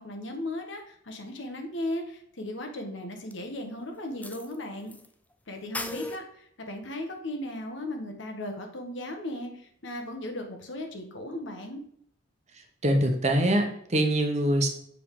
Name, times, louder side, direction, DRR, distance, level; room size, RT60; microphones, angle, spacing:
voice 1, 0.0-4.9 5.5-11.8, left 1 dB, 70° left, 4 dB, 1.3 m, -36 dB
sound 1, 3.3-3.4 4.2-5.1 5.3-5.4 5.7-6.2, left 2 dB, 10° left, 0.4 m, -36 dB
voice 2, 12.8-14.7, right 1 dB, 35° right, 3 dB, 1.0 m, -24 dB
7.1 x 4.9 x 3.7 m, 0.67 s
head